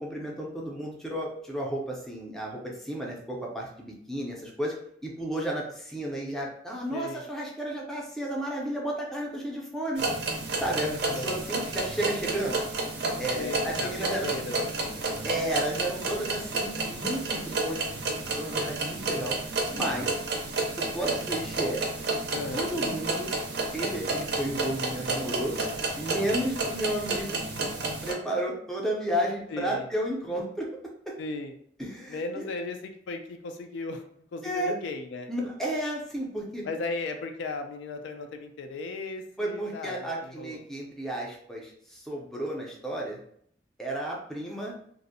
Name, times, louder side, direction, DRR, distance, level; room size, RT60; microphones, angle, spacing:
voice 1, 0.0-4.7 5.0-10.0 10.6-12.6 13.2-14.3 15.2-19.4 19.7-20.2 20.8-21.8 22.1-22.2 22.5-23.3 23.7-25.6 26.0-27.7 28.0-30.7 31.1-31.2 31.8-32.5 34.4-34.8 35.3-36.6 39.4-43.2 43.8-44.8, right 1 dB, 5° left, -3 dB, 0.4 m, -32 dB
voice 2, 6.9-7.2 10.8-11.3 13.4-15.0 22.3-22.7 29.5-29.9 31.2-31.5 32.1-34.0 34.3-35.3 36.6-40.0 40.2-40.6, left 3 dB, 75° left, 6 dB, 0.3 m, -36 dB
sound 1, 10.0-28.1, right 2 dB, 60° right, 0.5 m, -31 dB
2.5 x 2.0 x 2.6 m, 0.65 s
head